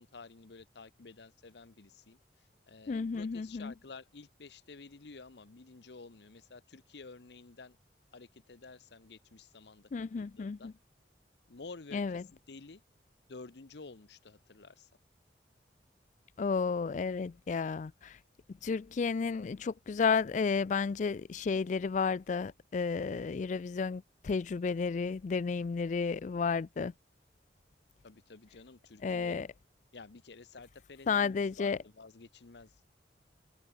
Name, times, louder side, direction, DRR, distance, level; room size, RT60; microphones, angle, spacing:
voice 1, 0.0-7.8 8.1-9.9 10.2-10.7 11.5-12.2 12.5-12.8 13.3-14.9 28.0-29.4 29.9-32.8, left 3 dB, 75° left, 0.9 m, -51 dB
voice 2, 2.9-3.7 9.9-10.7 11.9-12.2 16.4-18.2 18.5-26.9 29.0-29.5 31.1-31.8, left 5 dB, 45° left, 0.3 m, -32 dB
head